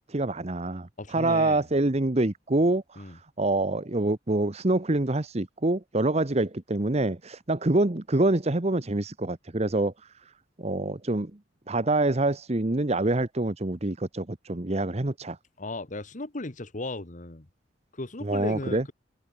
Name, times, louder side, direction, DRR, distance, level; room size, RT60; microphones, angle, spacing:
voice 1, 0.1-9.9 10.6-11.3 11.7-15.4 18.2-18.8, right 2 dB, 35° right, 1.1 m, -26 dB
voice 2, 1.0-1.6 3.0-3.2 15.6-17.5 17.9-18.9, left 2 dB, 45° left, 1.4 m, -36 dB
head